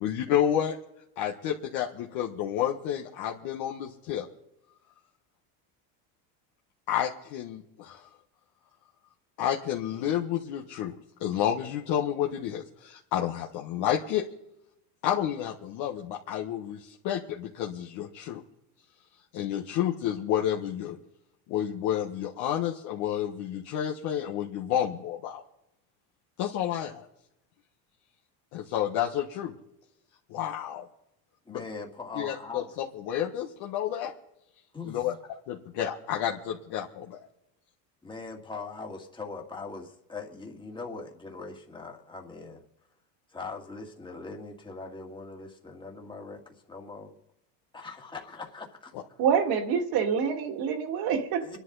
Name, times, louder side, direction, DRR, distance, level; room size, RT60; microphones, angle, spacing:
voice 1, 0.0-0.7 1.2-4.3 6.9-8.0 9.4-10.9 11.2-14.3 15.0-18.4 19.3-21.0 21.5-25.4 26.4-27.1 28.5-29.6 30.3-30.9 31.5-31.6 32.1-34.1 34.9-35.1 35.5-37.2, left 10 dB, 55° left, -1 dB, 1.5 m, -30 dB
voice 2, 31.5-32.7 34.7-35.1 38.0-42.6 43.3-47.2 47.7-49.0 51.4-51.6, left 4 dB, 10° left, 1 dB, 2.1 m, -41 dB
voice 3, 49.2-51.6, right 7 dB, 50° right, 4 dB, 2.4 m, -26 dB
27.5 x 11.0 x 4.1 m, 0.83 s
cardioid pair, 150°, 47 cm